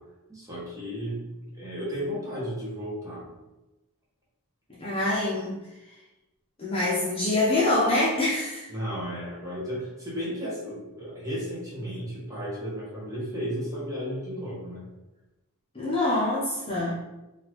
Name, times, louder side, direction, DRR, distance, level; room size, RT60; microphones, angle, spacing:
voice 1, 0.3-3.3 8.7-14.9 16.7-16.9, equal, 15° right, -7 dB, 1.0 m, -34 dB
voice 2, 4.7-5.6 6.6-8.7 15.7-16.9, left 2 dB, 25° left, -8 dB, 0.7 m, -25 dB
3.9 x 2.5 x 3.0 m, 1.0 s
head